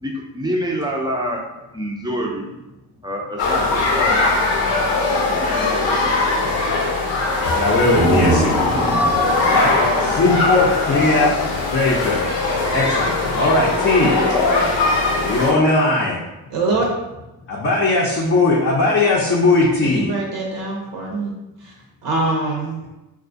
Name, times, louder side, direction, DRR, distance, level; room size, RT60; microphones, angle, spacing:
voice 1, 0.0-1.4 1.7-2.5 3.0-4.3 5.1-5.9, equal, 10° right, 0 dB, 0.5 m, -27 dB
sound 1, 3.4-15.5, left 3 dB, 75° left, 0.7 m, -20 dB
voice 2, 7.6-9.1 9.5-9.7 10.0-11.4 11.7-12.2 12.7-14.4 15.2-16.2 17.5-20.1, left 2 dB, 35° left, -4 dB, 0.6 m, -19 dB
sound 2, 7.6-11.3, right 2 dB, 90° right, 1.0 m, -24 dB
voice 3, 16.5-16.9 19.8-21.3 21.6-21.7 22.0-22.8, right 3 dB, 65° right, -1 dB, 0.7 m, -23 dB
2.3 x 2.3 x 2.5 m, 1.0 s
supercardioid pair, 55°, 45 cm